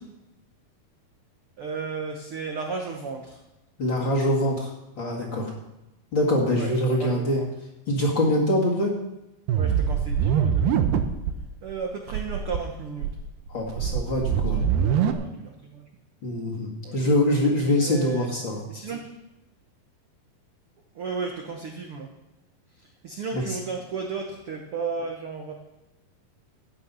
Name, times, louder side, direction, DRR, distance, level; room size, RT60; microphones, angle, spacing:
voice 1, 1.6-3.4 6.5-7.5 9.6-10.9 11.6-13.1 14.5-15.8 16.8-17.0 17.8-18.3 18.7-19.0 20.9-22.1 23.0-25.5, right 5 dB, 70° right, 2 dB, 1.3 m, -34 dB
voice 2, 3.8-4.7 5.0-5.5 6.1-7.4 7.9-8.9 13.5-14.6 16.2-18.6 23.3-23.6, left 1 dB, 40° left, -2 dB, 2.2 m, -24 dB
sound 1, 9.5-11.4 11.7-11.8 12.1-12.6 13.0-15.1, right 8 dB, 85° right, 2.8 m, -23 dB
14.0 x 9.1 x 5.6 m, 0.93 s
omnidirectional pair, 4.3 m